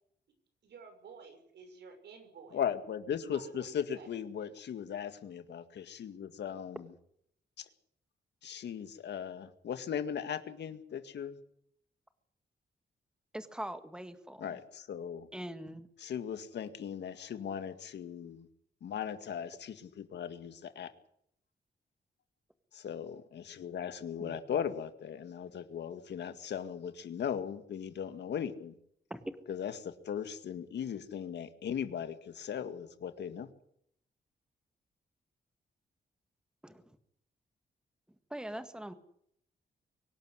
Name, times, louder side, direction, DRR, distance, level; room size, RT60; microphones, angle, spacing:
voice 1, 0.6-2.6 3.3-4.1, right 5 dB, 80° right, 6 dB, 6.2 m, -52 dB
voice 2, 2.5-6.8 7.6-7.7 8.4-11.4 14.4-15.3 16.0-18.5 18.8-20.9 22.7-28.7 29.5-33.5, left 8 dB, 90° left, 10 dB, 2.0 m, -38 dB
voice 3, 13.3-14.6 15.3-15.9 24.2-24.4 29.1-29.3 36.6-37.0 38.3-38.9, right 1 dB, 5° right, 9 dB, 1.7 m, -42 dB
24.0 x 12.0 x 9.9 m, 0.70 s
wide cardioid pair, 140°, 17 cm